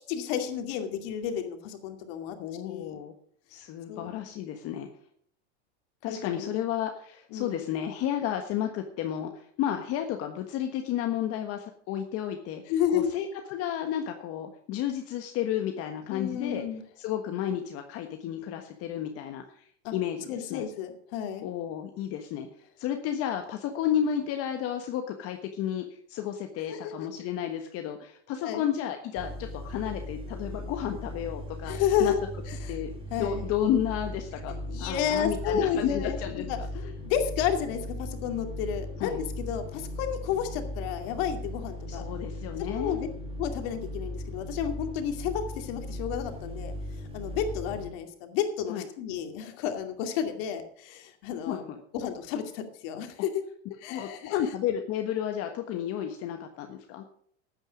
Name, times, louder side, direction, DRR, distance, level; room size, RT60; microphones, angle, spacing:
voice 1, 0.1-3.0 3.9-4.3 6.1-6.6 7.3-7.6 12.7-13.1 16.1-16.8 19.8-19.9 20.3-21.5 26.7-26.9 28.4-28.6 31.7-32.2 32.5-32.8 33.1-33.4 34.7-36.2 36.5-36.6 37.1-42.0 42.7-43.0 43.4-46.7 47.1-51.6 51.9-53.3 53.8-54.3, left 8 dB, 60° left, 6 dB, 2.5 m, -31 dB
voice 2, 2.4-3.1 3.5-4.9 6.0-16.6 17.0-20.6 21.4-22.5 22.8-32.1 32.7-32.9 33.2-34.5 34.8-36.9 39.0-39.2 41.9-43.0 48.7-48.9 51.5-51.8 53.9-57.0, left 10 dB, 45° left, 5 dB, 1.4 m, -32 dB
sound 1, 29.2-47.9, left 1 dB, 15° right, 2.4 m, -38 dB
13.0 x 9.2 x 5.2 m, 0.63 s
supercardioid pair, 130°, 33 cm